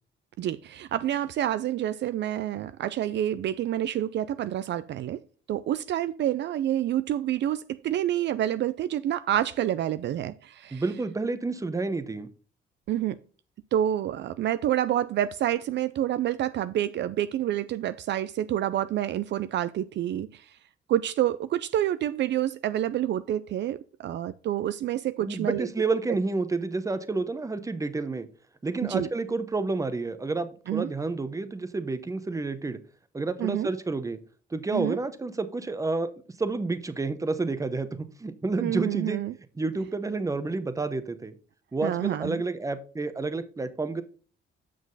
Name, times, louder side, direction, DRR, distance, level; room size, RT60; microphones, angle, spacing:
voice 1, 0.4-5.2 5.5-10.8 12.9-13.2 13.7-20.5 20.9-25.7 28.9-29.1 30.7-30.9 33.4-33.7 34.7-35.0 38.6-39.3 41.8-42.4, right 12 dB, 65° right, 0.4 m, -28 dB
voice 2, 10.7-12.3 25.2-28.3 28.6-32.8 33.1-34.2 34.5-36.1 36.4-39.2 39.6-41.3 41.7-44.0, right 3 dB, 15° right, 0.8 m, -30 dB
7.5 x 6.1 x 3.9 m
cardioid pair, 90°, 20 cm